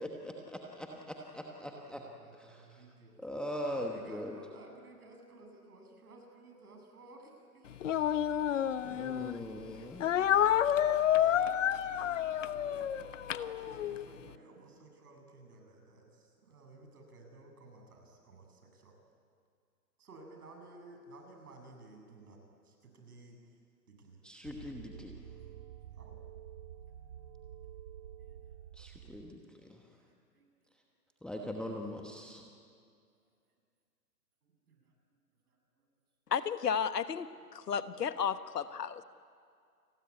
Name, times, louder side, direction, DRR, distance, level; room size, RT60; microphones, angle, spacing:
voice 1, 0.0-2.0 2.4-2.6 3.2-4.3 8.8-10.1 24.2-25.1 28.8-29.8 31.2-32.4, equal, ahead, 1.1 m, -41 dB
voice 2, 1.1-3.2 3.5-8.6 8.8-9.7 10.0-10.4 10.7-11.5 11.9-13.0 13.3-18.9 20.0-22.4 22.6-23.4 23.9-24.3 25.4-26.2 28.2-28.6 29.1-29.5 29.9-30.7 34.4-34.9 35.5-35.9 38.3-38.4, right 2 dB, 65° right, 7.8 m, -56 dB
Speech, 7.8-9.4 10.0-14.0, left 10 dB, 50° left, 1.1 m, -29 dB
sound 1, 24.4-29.4, right 10 dB, 20° right, 0.6 m, -49 dB
voice 3, 36.3-39.0, left 7 dB, 75° left, 1.4 m, -33 dB
29.0 x 21.0 x 9.7 m
hypercardioid pair, 140°, 49 cm